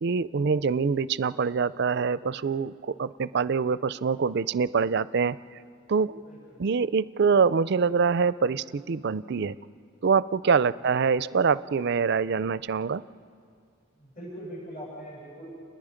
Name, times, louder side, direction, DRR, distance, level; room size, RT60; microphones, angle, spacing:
voice 1, 0.0-5.4 5.9-6.2 6.6-9.6 10.0-13.0, right 5 dB, 55° right, 17 dB, 0.4 m, -25 dB
voice 2, 6.2-6.6 13.9-15.5, equal, 45° left, -8 dB, 7.9 m, -43 dB
29.5 x 20.5 x 5.1 m, 2.3 s
head